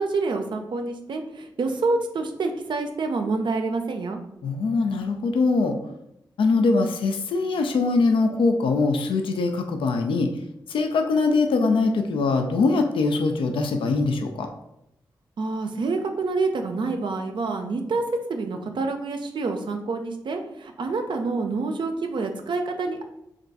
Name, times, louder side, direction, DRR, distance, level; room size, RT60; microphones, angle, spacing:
voice 1, 0.0-4.2 15.4-23.0, right 3 dB, 65° right, 5 dB, 0.4 m, -27 dB
voice 2, 4.4-5.8 6.4-10.3 10.7-14.5, left 3 dB, 80° left, 4 dB, 0.4 m, -22 dB
2.4 x 2.2 x 3.9 m, 0.83 s
cardioid pair, 40°, 9 cm